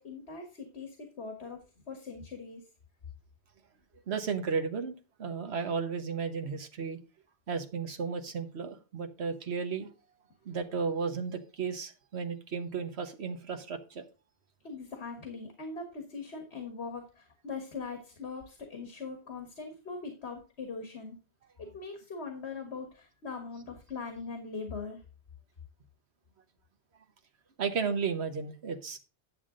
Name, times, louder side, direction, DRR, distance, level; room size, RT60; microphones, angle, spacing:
voice 1, 0.0-2.6 14.6-21.2 21.6-25.0, left 4 dB, 80° left, 4 dB, 1.8 m, -41 dB
voice 2, 4.1-7.0 7.5-9.9 10.5-14.0 27.6-29.0, right 5 dB, 80° right, 5 dB, 1.4 m, -34 dB
10.5 x 7.1 x 3.8 m, 0.33 s
omnidirectional pair, 1.1 m